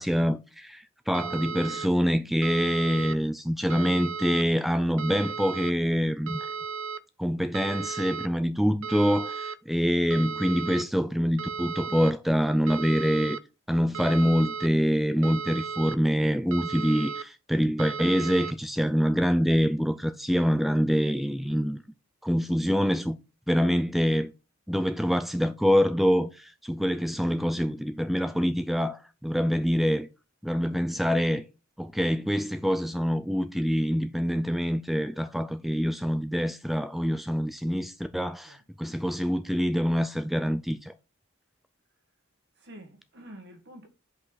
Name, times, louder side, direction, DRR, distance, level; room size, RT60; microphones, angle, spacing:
voice 1, 0.0-6.5 7.2-13.4 13.7-21.8 22.2-23.2 23.5-24.3 24.7-30.1 30.4-31.4 31.8-40.9, equal, ahead, 0.3 m, -25 dB
sound 1, 1.1-1.9 2.4-3.1 3.7-4.4 5.0-5.7 6.3-7.0 7.5-8.3 8.8-9.6 10.1-10.8 11.4-12.1 12.7-13.4 13.9-14.7 15.2-16.0 16.5-17.2 17.8-18.5, right 6 dB, 75° right, 0.5 m, -35 dB
voice 2, 42.6-43.9, right 1 dB, 55° right, 1.8 m, -48 dB
8.4 x 5.4 x 4.0 m
head